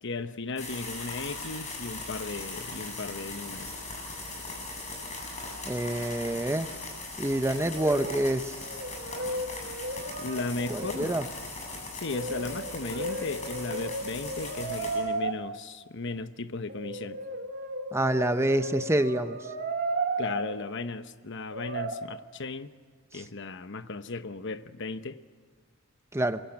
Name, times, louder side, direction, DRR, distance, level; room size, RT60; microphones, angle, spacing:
voice 1, 0.0-3.7 10.2-11.2 11.9-17.2 20.2-22.7 23.1-25.2, left 3 dB, 55° left, 1.0 m, -36 dB
sound 1, 0.6-15.0, left 2 dB, 35° left, 7.9 m, -39 dB
voice 2, 5.6-6.7 7.2-8.7 10.7-11.3 17.9-19.5 23.1-23.2 26.1-26.4, right 1 dB, 10° right, 0.8 m, -27 dB
Brass instrument, 7.6-8.3 8.6-11.1 12.1-15.3 16.7-20.5 21.5-22.0, right 2 dB, 50° right, 2.4 m, -34 dB
28.0 x 23.0 x 8.7 m
head